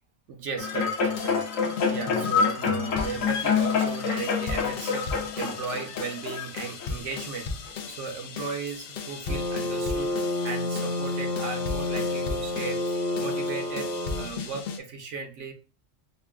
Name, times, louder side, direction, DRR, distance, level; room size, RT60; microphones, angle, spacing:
voice 1, 0.3-10.1 10.4-15.5, right 5 dB, 65° right, 3 dB, 1.0 m, -36 dB
sound 1, 0.6-7.1 7.7-7.8, left 6 dB, 80° left, 1.1 m, -27 dB
sound 2, 0.8-14.8, left 5 dB, 60° left, 0.6 m, -37 dB
sound 3, 9.3-14.2, left 1 dB, 5° left, 0.6 m, -29 dB
5.4 x 2.3 x 2.3 m, 0.34 s
omnidirectional pair, 1.4 m